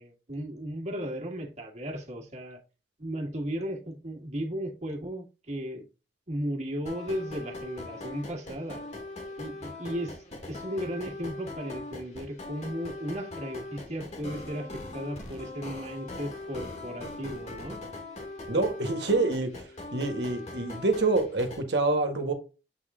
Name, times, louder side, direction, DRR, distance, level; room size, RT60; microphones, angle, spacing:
voice 1, 0.0-2.6 3.0-5.9 6.3-8.9 9.4-17.8, equal, 40° right, 1.7 m, -35 dB
sound 1, 6.9-21.6, left 2 dB, 40° left, 1.6 m, -41 dB
voice 2, 18.5-19.5 19.9-22.3, right 3 dB, 65° right, 1.5 m, -26 dB
7.7 x 3.7 x 3.6 m
head